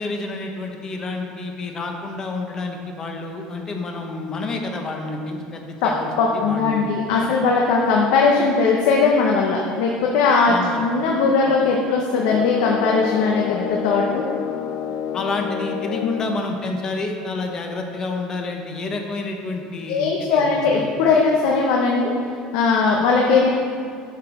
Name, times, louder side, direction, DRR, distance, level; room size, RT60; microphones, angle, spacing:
voice 1, 0.0-6.9 7.2-7.3 10.5-10.9 11.4-11.6 15.1-20.9, left 3 dB, 25° left, 3 dB, 0.8 m, -29 dB
voice 2, 6.2-14.2 19.9-22.1 22.5-23.5, left 4 dB, 75° left, -1 dB, 0.9 m, -19 dB
sound 1, 12.2-16.4, left 8 dB, 50° left, 0.3 m, -28 dB
7.9 x 5.2 x 5.9 m, 2.3 s
cardioid pair, 175°, 3 cm